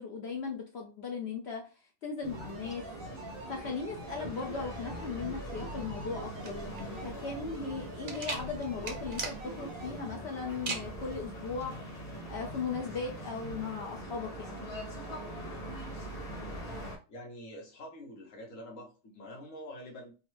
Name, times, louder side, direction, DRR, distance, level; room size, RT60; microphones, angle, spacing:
voice 1, 0.0-1.6 2.0-2.9 3.5-11.7 12.3-14.8, left 5 dB, 60° left, 0 dB, 0.8 m, -38 dB
sound 1, 2.2-17.0, equal, 35° left, 1.2 m, -42 dB
sound 2, 2.3-10.0, right 3 dB, 85° right, 1.1 m, -47 dB
sound 3, 6.4-14.0, right 4 dB, 50° right, 0.7 m, -42 dB
voice 2, 16.3-20.1, left 1 dB, 80° left, -1 dB, 1.4 m, -47 dB
3.6 x 2.1 x 3.1 m, 0.33 s
omnidirectional pair, 1.3 m